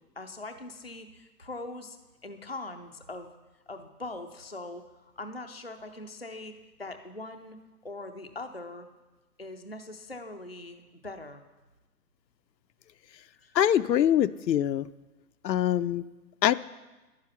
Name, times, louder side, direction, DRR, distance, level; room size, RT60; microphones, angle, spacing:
voice 1, 0.2-2.0 2.2-3.3 3.7-7.6 7.8-8.9 9.4-11.4 13.4-13.6, left 2 dB, 40° left, 6 dB, 0.4 m, -41 dB
voice 2, 13.5-14.9 15.4-16.1 16.4-16.5, left 10 dB, 90° left, 14 dB, 0.6 m, -24 dB
10.5 x 9.7 x 5.7 m, 1.1 s
hypercardioid pair, 180°, 49 cm